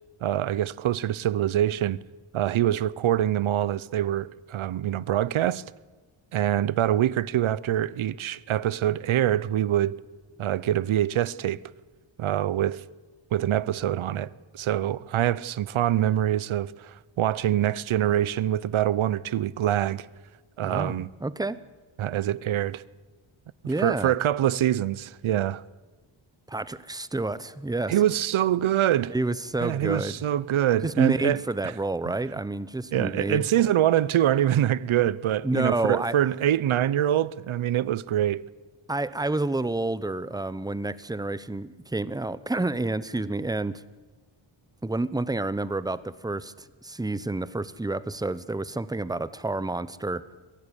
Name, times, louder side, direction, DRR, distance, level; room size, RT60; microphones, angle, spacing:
voice 1, 0.2-2.0 2.3-5.6 6.3-9.9 10.4-11.6 12.2-12.8 13.3-20.1 20.6-21.1 22.0-22.8 23.8-25.6 27.9-29.1 29.6-31.4 32.9-38.4, right 11 dB, 70° right, 0.8 m, -25 dB
voice 2, 20.6-21.6 23.7-24.1 26.5-27.9 29.1-30.2 30.8-33.5 35.4-36.2 38.9-43.8 44.8-50.2, right 2 dB, 10° right, 0.7 m, -29 dB
23.0 x 16.0 x 10.0 m
wide cardioid pair, 135°, 50 cm